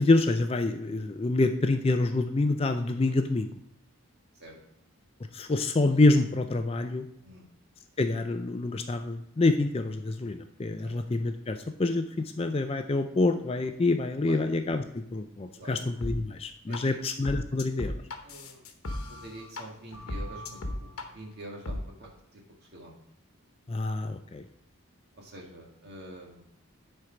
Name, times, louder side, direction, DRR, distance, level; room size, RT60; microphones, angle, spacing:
voice 1, 0.0-3.5 5.3-7.1 8.0-12.0 12.4-17.9 23.7-24.4, left 2 dB, 25° left, 7 dB, 0.4 m, -26 dB
sound 1, 16.0-16.1 16.7-16.8 17.3-19.6 19.9-21.1 21.7-21.8, left 1 dB, 85° left, 1.1 m, -35 dB
voice 2, 18.2-18.6 19.1-23.0 25.1-26.4, right 1 dB, 50° right, -1 dB, 1.9 m, -46 dB
9.7 x 4.5 x 5.0 m, 0.73 s
head